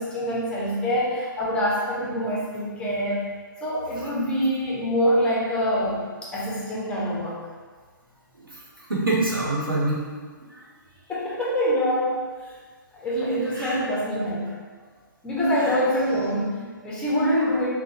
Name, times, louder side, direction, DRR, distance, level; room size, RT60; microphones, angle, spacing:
voice 1, 0.0-3.3 3.6-7.4 11.1-12.3 12.9-14.5 15.2-17.7, equal, 10° left, -6 dB, 0.4 m, -25 dB
voice 2, 8.3-10.0 10.5-10.6 13.5-13.8 15.6-15.8, right 2 dB, 85° right, -5 dB, 0.9 m, -26 dB
3.4 x 2.0 x 3.1 m, 1.5 s
figure-of-eight pair, 135°, 11 cm